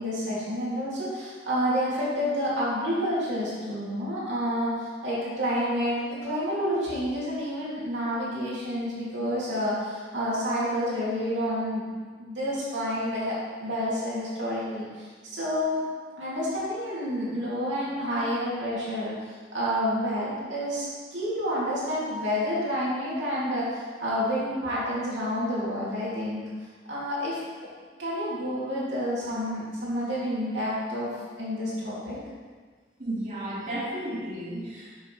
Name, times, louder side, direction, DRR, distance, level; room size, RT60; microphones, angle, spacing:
voice 1, 0.0-11.9 12.2-15.8 16.2-20.9 21.1-26.4 26.9-27.4 28.0-32.2, equal, 85° right, -8 dB, 2.6 m, -29 dB
voice 2, 33.0-34.9, right 1 dB, 45° right, -8 dB, 2.4 m, -33 dB
9.9 x 6.4 x 3.3 m, 1.5 s
head